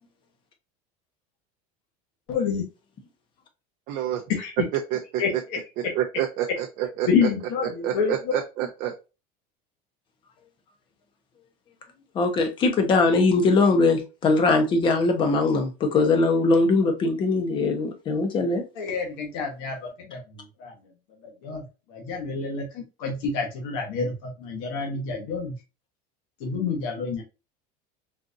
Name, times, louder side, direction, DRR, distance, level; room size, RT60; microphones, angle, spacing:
voice 1, 2.3-2.7 4.4-4.7 5.2-5.6 7.1-8.3 18.8-20.2 20.6-20.7 21.4-21.6 21.9-25.5 26.4-27.2, left 5 dB, 60° left, 1.1 m, -28 dB
voice 2, 3.9-4.2 4.7-5.4 6.0-7.3 7.8-8.9, right 11 dB, 40° right, 0.5 m, -28 dB
voice 3, 12.1-18.6, left 3 dB, 25° left, 0.7 m, -21 dB
3.9 x 2.5 x 2.5 m
cardioid pair, 165°, 20 cm